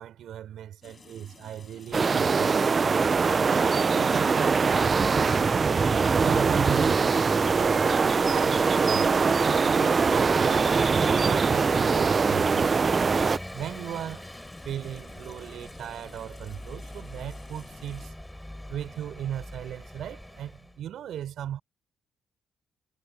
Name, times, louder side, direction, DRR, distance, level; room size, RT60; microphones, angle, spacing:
voice 1, 0.0-2.6 3.5-5.7 6.2-9.1 9.4-10.8 11.3-12.7 13.5-14.2 14.6-18.1 18.7-21.6, right 10 dB, 70° right, 5.4 m, -37 dB
sound 1, 0.8-18.1, left 5 dB, 35° left, 6.9 m, -54 dB
sound 2, 1.9-13.4, right 5 dB, 35° right, 0.5 m, -22 dB
Vehicle / Engine, 4.3-20.8, left 1 dB, 5° left, 6.7 m, -42 dB
cardioid pair, 90°, 0 cm